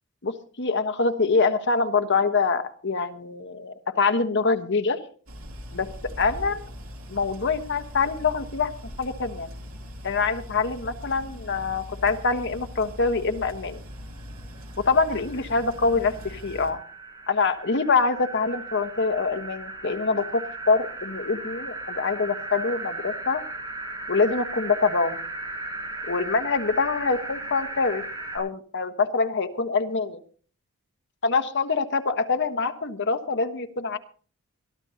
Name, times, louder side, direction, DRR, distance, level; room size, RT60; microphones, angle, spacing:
voice 1, 0.2-5.0 5.7-5.9 6.2-6.6 7.1-8.7 9.0-9.5 10.0-13.8 14.8-16.8 17.3-23.4 24.1-25.2 26.1-28.0 28.3-30.2 31.2-34.0, left 4 dB, 55° left, 8 dB, 1.2 m, -25 dB
sound 1, 5.3-16.7, equal, 65° right, 3.1 m, -41 dB
sound 2, 14.2-14.3 14.6-28.4, right 2 dB, 15° right, 6.7 m, -37 dB
22.5 x 13.5 x 2.8 m, 0.42 s
head